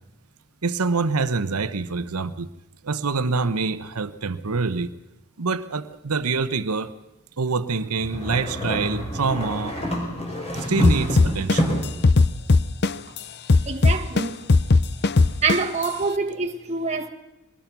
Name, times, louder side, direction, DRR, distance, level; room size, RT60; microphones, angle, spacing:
voice 1, 0.6-2.5 2.8-4.9 5.4-6.9 7.4-9.8 10.7-11.7, right 4 dB, 75° right, 0.9 m, -25 dB
sound 1, 8.0-12.0, equal, 30° left, 4.9 m, -27 dB
sound 2, 10.8-13.2 13.5-15.9, left 3 dB, 50° left, 0.7 m, -17 dB
voice 2, 13.7-14.4 15.4-17.1, right 4 dB, 30° right, 1.4 m, -25 dB
22.5 x 20.0 x 6.1 m
head